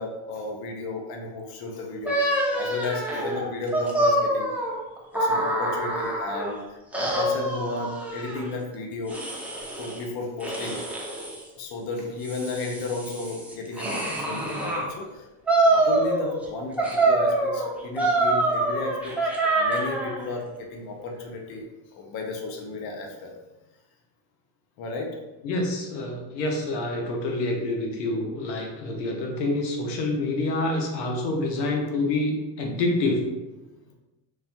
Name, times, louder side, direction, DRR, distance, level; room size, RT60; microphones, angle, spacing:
voice 1, 0.0-4.5 5.1-9.2 9.8-10.8 11.6-15.3 15.7-23.3 24.8-25.1, left 3 dB, 50° left, 1 dB, 0.7 m, -34 dB
Happy and Sad Flower Creatures, 2.0-6.5 6.9-8.5 9.1-10.0 10.4-11.4 12.0-14.9 15.5-16.4 16.8-20.2, right 2 dB, 5° right, 0.4 m, -25 dB
voice 2, 25.4-33.3, left 2 dB, 80° left, 1 dB, 0.8 m, -27 dB
3.1 x 2.3 x 2.8 m, 1.1 s
supercardioid pair, 95°, 48 cm